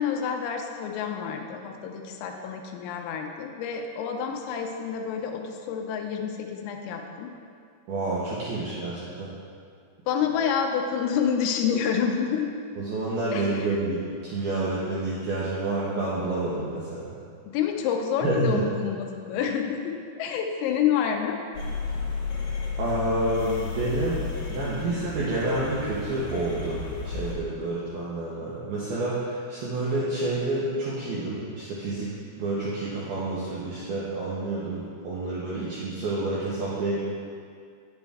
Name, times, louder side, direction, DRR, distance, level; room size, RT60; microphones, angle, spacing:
voice 1, 0.0-7.3 10.1-12.5 13.3-13.8 17.5-21.4, left 7 dB, 85° left, 3 dB, 3.4 m, -28 dB
voice 2, 7.9-9.3 12.8-17.1 18.2-18.6 22.8-24.2 24.5-32.1 32.4-37.0, right 2 dB, 80° right, -8 dB, 2.2 m, -29 dB
sound 1, 21.5-27.3, left 4 dB, 70° left, 3.0 m, -33 dB
9.2 x 7.8 x 3.5 m, 2.2 s
omnidirectional pair, 5.9 m